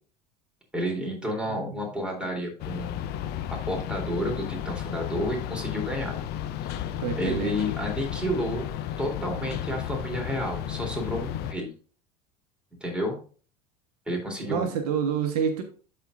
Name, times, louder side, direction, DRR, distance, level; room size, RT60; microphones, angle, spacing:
voice 1, 0.7-3.2 3.7-6.2 6.6-6.9 7.2-8.7 9.0-11.7 12.8-13.2 14.1-14.7, equal, 5° right, 0 dB, 3.3 m, -31 dB
voice 2, 1.3-1.7 7.0-7.7 14.4-15.6, right 7 dB, 70° right, 6 dB, 1.1 m, -28 dB
sound 1, 2.6-11.5, left 10 dB, 55° left, 0.8 m, -33 dB
13.0 x 4.4 x 2.6 m, 0.40 s
hypercardioid pair, 80°, 20 cm